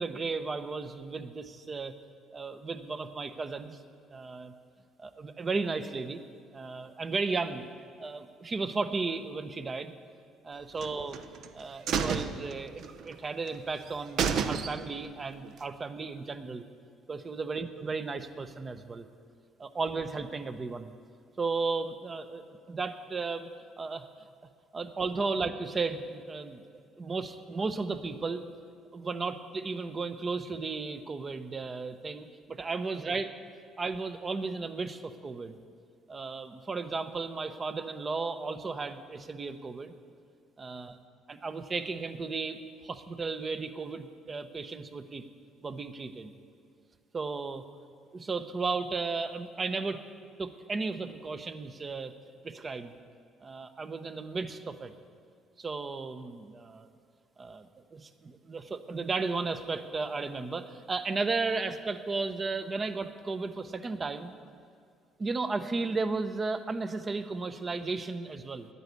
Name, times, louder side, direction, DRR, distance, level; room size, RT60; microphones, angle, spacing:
voice 1, 0.0-1.9 2.3-3.8 4.1-4.5 5.0-6.2 6.5-7.6 8.0-9.9 10.4-11.2 11.5-16.6 17.1-19.1 19.6-20.9 21.4-23.5 23.8-24.1 24.7-28.4 28.9-33.3 33.8-35.6 36.1-39.9 40.6-41.0 41.3-45.2 45.6-46.3 47.1-47.6 48.1-50.0 50.4-52.1 52.4-52.9 53.4-54.9 55.6-56.9 57.4-64.3 65.2-68.7, right 4 dB, 30° right, 9 dB, 0.8 m, -34 dB
sound 1, 10.8-11.5 11.9-13.2 13.5-13.6 13.9-14.0 14.2-15.1 15.4-15.5, right 6 dB, 65° right, 0.7 m, -30 dB
10.5 x 9.6 x 8.2 m, 2.3 s
cardioid pair, 105°, 0 cm